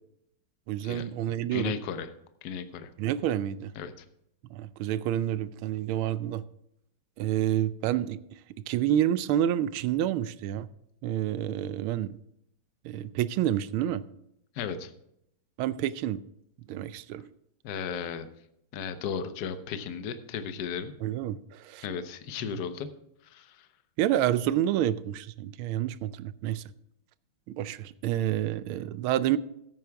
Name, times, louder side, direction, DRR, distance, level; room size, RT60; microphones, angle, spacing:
voice 1, 0.7-1.8 3.0-3.7 4.5-6.4 7.2-8.2 8.7-10.7 11.0-12.2 12.8-14.0 15.6-16.2 16.7-17.3 21.0-21.9 24.0-26.6 27.5-29.4, right 11 dB, 80° right, 1.4 m, -28 dB
voice 2, 1.5-2.1 2.4-2.9 3.8-4.0 14.5-14.9 17.6-18.3 18.7-20.9 21.8-22.9 23.2-23.7, left 7 dB, 60° left, 1.2 m, -35 dB
14.0 x 9.3 x 3.4 m
omnidirectional pair, 2.3 m